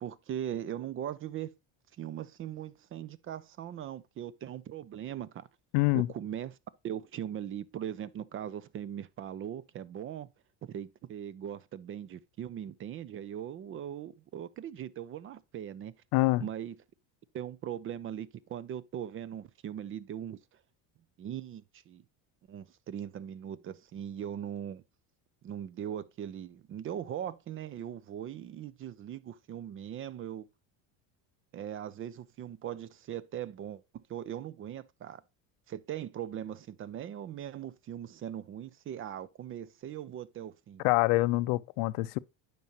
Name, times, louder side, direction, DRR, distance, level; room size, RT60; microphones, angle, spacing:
voice 1, 0.0-1.5 2.0-5.5 5.9-6.6 6.8-10.3 10.6-15.9 16.4-16.7 17.3-20.4 21.2-22.0 22.5-24.8 25.4-30.5 31.5-35.2 35.7-40.9, right 10 dB, 30° right, 0.4 m, -40 dB
voice 2, 5.7-6.1 16.1-16.4 40.8-42.2, left 20 dB, 75° left, 0.6 m, -25 dB
9.3 x 5.4 x 2.8 m
supercardioid pair, 115°, 47 cm